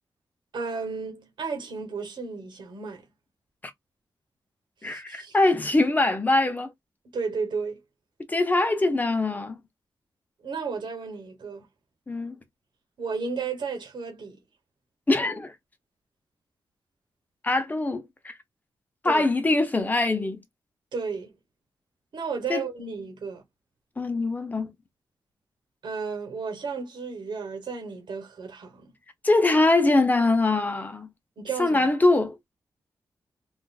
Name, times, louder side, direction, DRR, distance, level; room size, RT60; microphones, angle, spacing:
voice 1, 0.5-3.1 4.8-5.4 7.1-7.8 10.4-11.7 13.0-14.4 19.0-19.2 20.9-21.3 22.1-23.4 25.8-28.9 31.4-31.9, right 5 dB, 75° right, 1.1 m, -33 dB
voice 2, 4.8-6.7 8.3-9.6 12.1-12.4 15.1-15.5 17.4-18.4 19.0-20.4 22.5-22.7 24.0-24.7 29.2-31.1 31.6-32.4, left 2 dB, 20° left, 0.8 m, -23 dB
3.7 x 2.5 x 2.4 m
wide cardioid pair, 105°, 8 cm